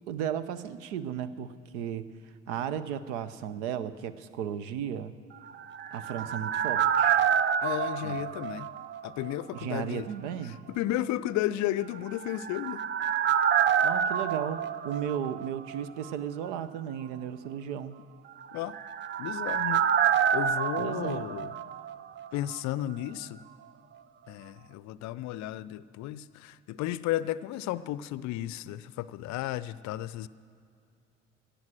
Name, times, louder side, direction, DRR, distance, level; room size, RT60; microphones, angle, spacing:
voice 1, 0.1-2.1 2.5-5.1 5.9-7.2 8.0-8.2 9.5-10.6 13.8-18.0 20.8-21.3, right 9 dB, 65° right, 15 dB, 0.8 m, -35 dB
sound 1, 5.5-9.3 9.6-9.7 12.1-15.8 16.0-16.1 18.4-22.3 22.5-22.6, right 8 dB, 30° right, 0.6 m, -28 dB
voice 2, 7.6-8.7 9.0-10.1 10.4-12.8 18.5-18.8 19.2-19.9 20.3-21.5 22.3-23.4 24.3-30.3, left 14 dB, 50° left, 18 dB, 0.5 m, -33 dB
16.5 x 10.0 x 7.6 m, 2.4 s
figure-of-eight pair, 55°, 37 cm